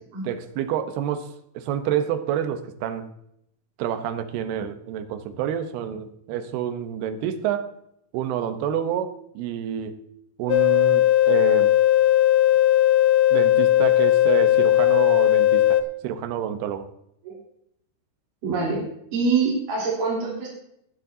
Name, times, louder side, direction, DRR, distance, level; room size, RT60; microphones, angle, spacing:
voice 1, 0.2-3.1 3.8-7.7 8.1-10.0 10.4-11.8 13.3-16.9, right 9 dB, 75° right, 9 dB, 2.8 m, -28 dB
sound 1, 10.5-15.8, left 13 dB, 85° left, 1.9 m, -18 dB
voice 2, 18.4-20.5, right 4 dB, 55° right, -7 dB, 5.0 m, -25 dB
20.5 x 9.4 x 2.8 m, 0.75 s
omnidirectional pair, 4.8 m